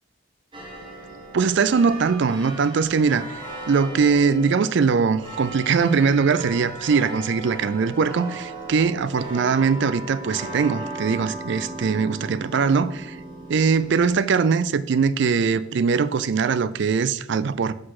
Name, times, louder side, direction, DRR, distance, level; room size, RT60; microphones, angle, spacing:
sound 1, 0.5-14.1, right 2 dB, 25° right, 1.6 m, -37 dB
voice 1, 1.3-13.2 13.5-17.7, right 5 dB, 60° right, 0.4 m, -21 dB
5.9 x 5.1 x 5.9 m
head